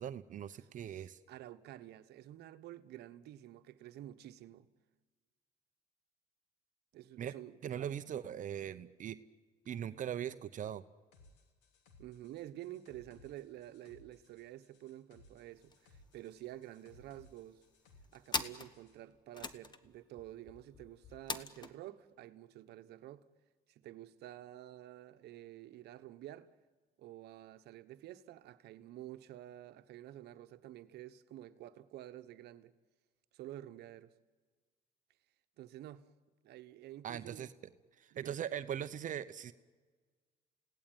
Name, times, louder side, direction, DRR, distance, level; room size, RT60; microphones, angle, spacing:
voice 1, 0.0-1.2 7.2-7.3 7.6-9.2 9.7-10.8 37.0-37.5 38.0-39.5, right 9 dB, 50° right, 0.8 m, -40 dB
voice 2, 0.6-4.7 6.9-7.9 12.0-17.6 18.1-23.2 23.7-26.5 27.0-32.7 33.3-34.1 35.6-36.1 36.4-37.5 38.1-38.3, right 13 dB, 75° right, 1.1 m, -50 dB
sound 1, 11.1-19.0, left 2 dB, 85° left, 3.1 m, -64 dB
sound 2, 15.5-15.8 16.1-16.2 16.4-17.1 17.7-21.7, left 4 dB, 25° left, 1.2 m, -42 dB
30.0 x 17.5 x 9.2 m
cardioid pair, 110°, 17 cm